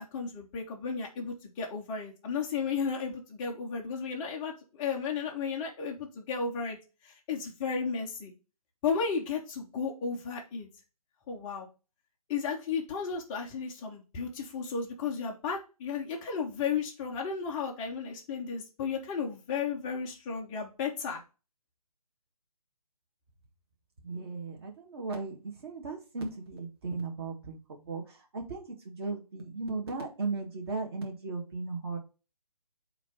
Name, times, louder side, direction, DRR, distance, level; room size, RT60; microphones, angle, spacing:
voice 1, 0.0-6.8 7.0-8.3 8.8-10.7 11.3-11.7 12.3-21.2, left 5 dB, 5° left, -1 dB, 0.3 m, -34 dB
voice 2, 24.0-32.0, right 3 dB, 40° right, 2 dB, 1.6 m, -36 dB
7.9 x 2.9 x 4.5 m, 0.31 s
figure-of-eight pair, 145°, 19 cm